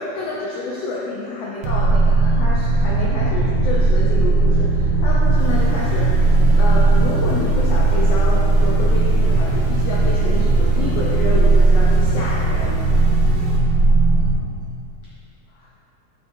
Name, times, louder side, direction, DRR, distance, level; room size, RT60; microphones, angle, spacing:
voice 1, 0.0-6.1 6.5-12.8 15.5-15.7, left 3 dB, 80° left, -5 dB, 1.4 m, -28 dB
sound 1, 1.6-14.3, right 2 dB, 75° right, 2.0 m, -17 dB
sound 2, 5.4-13.6, right 1 dB, 55° right, 1.2 m, -39 dB
9.4 x 5.0 x 2.6 m, 2.5 s
omnidirectional pair, 3.6 m